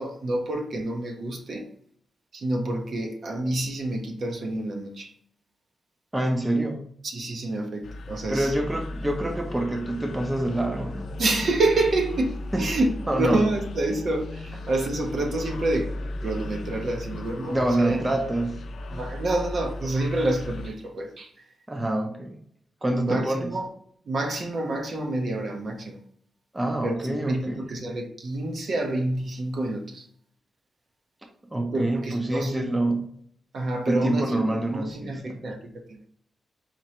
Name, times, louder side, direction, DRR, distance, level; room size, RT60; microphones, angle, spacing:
voice 1, 0.0-1.7 2.3-5.1 7.0-8.5 11.2-15.9 16.2-18.0 18.9-21.3 23.0-23.7 24.1-26.0 26.8-30.1 31.6-32.7 33.5-35.6 35.9-36.1, right 2 dB, 55° right, 0.8 m, -28 dB
voice 2, 6.1-6.8 8.3-11.1 12.5-12.8 13.1-13.4 17.5-18.6 21.7-22.4 22.8-23.5 26.5-27.7 31.5-33.1 33.9-35.4, right 1 dB, 15° right, 0.6 m, -26 dB
sound 1, 7.8-20.7, left 1 dB, 70° left, 0.4 m, -36 dB
4.3 x 3.1 x 2.9 m
wide cardioid pair, 125°, 0 cm